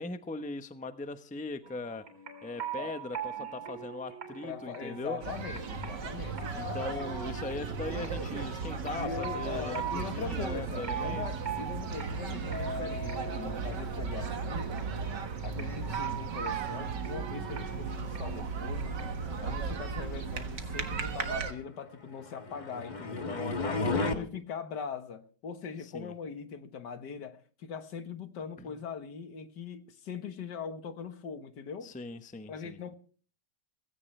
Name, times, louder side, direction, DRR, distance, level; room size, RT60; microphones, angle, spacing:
voice 1, 0.0-2.1 2.4-5.2 6.5-11.3 23.3-24.3 25.8-26.1 28.6-28.8 31.8-32.8, left 3 dB, 5° left, 0.7 m, -40 dB
sound 1, 1.6-19.3, right 5 dB, 55° right, 4.1 m, -42 dB
voice 2, 4.4-6.6 9.0-14.7 15.4-19.0 19.4-23.3 23.9-31.9 32.5-32.9, left 6 dB, 75° left, 1.9 m, -41 dB
sound 2, 5.2-21.5, right 5 dB, 80° right, 2.2 m, -36 dB
sound 3, 22.2-24.2, left 3 dB, 30° left, 1.3 m, -32 dB
17.5 x 16.5 x 3.3 m
omnidirectional pair, 1.8 m